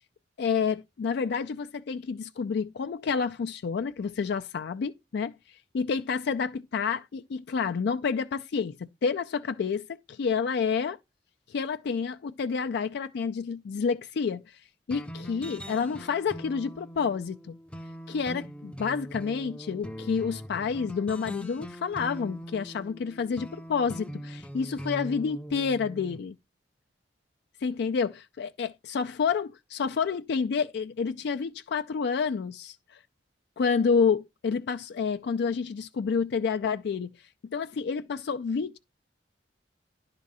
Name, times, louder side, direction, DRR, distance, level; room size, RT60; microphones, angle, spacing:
voice 1, 0.4-5.4 5.7-11.0 11.5-14.6 14.9-17.6 18.1-26.4 27.6-33.0 33.6-37.1 37.4-38.8, left 5 dB, 65° left, 0.4 m, -29 dB
sound 1, 14.9-26.2, equal, 5° left, 0.4 m, -41 dB
10.5 x 3.7 x 5.4 m
head